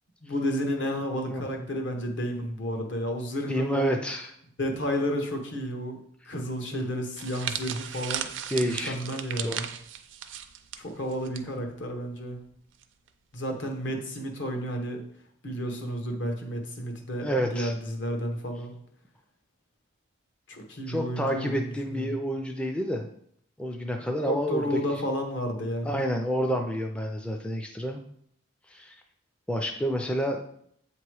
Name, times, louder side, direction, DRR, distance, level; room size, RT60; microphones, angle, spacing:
voice 1, 0.2-4.0 4.6-6.0 6.3-8.3 8.6-9.7 10.8-12.4 13.3-15.0 15.4-18.7 20.5-22.0 24.3-26.0, equal, 65° left, 3 dB, 1.1 m, -31 dB
voice 2, 3.5-4.3 6.7-6.8 8.5-8.9 9.4-9.6 16.2-16.3 17.1-17.7 20.9-23.1 23.6-25.0 25.8-28.0 28.7-29.0 29.5-30.4, equal, 5° left, 3 dB, 0.4 m, -29 dB
sound 1, 7.2-11.4 11.7-11.9 12.8-13.1, right 9 dB, 70° right, 0.4 m, -36 dB
7.8 x 2.9 x 4.7 m, 0.68 s
head